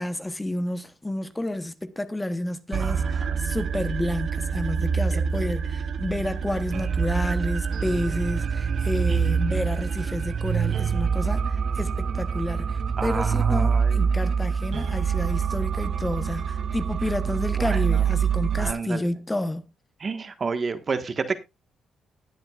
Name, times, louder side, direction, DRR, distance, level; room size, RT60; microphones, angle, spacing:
voice 1, 0.0-19.6, left 1 dB, 10° left, 1.0 m, -30 dB
sound 1, 2.7-18.7, right 6 dB, 55° right, 0.7 m, -26 dB
voice 2, 2.8-3.4 9.1-9.4 13.0-14.0 17.6-18.0 18.6-19.1 20.0-21.4, right 4 dB, 40° right, 1.4 m, -31 dB
20.0 x 7.9 x 2.4 m
cardioid pair, 90°, 0 cm